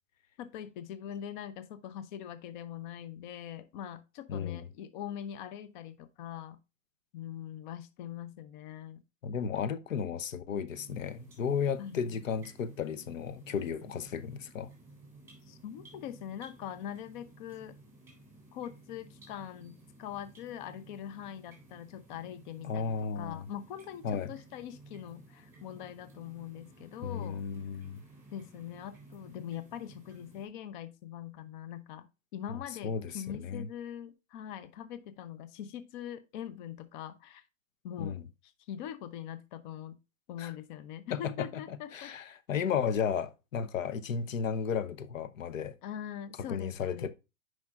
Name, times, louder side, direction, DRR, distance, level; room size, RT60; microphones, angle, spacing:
voice 1, 0.4-6.6 7.1-9.0 11.8-12.2 15.5-17.7 18.5-27.4 28.3-37.4 37.8-40.0 40.3-42.1 45.8-47.1, left 10 dB, 40° left, 0.7 m, -42 dB
voice 2, 4.3-4.6 9.2-14.7 22.6-23.5 24.0-24.3 27.0-28.0 32.5-33.7 38.0-38.2 40.4-40.5 41.1-45.8 46.5-47.1, left 7 dB, 85° left, 0.9 m, -34 dB
sound 1, 10.7-30.5, right 2 dB, 5° right, 3.2 m, -56 dB
9.4 x 5.1 x 2.4 m
hypercardioid pair, 140°, 38 cm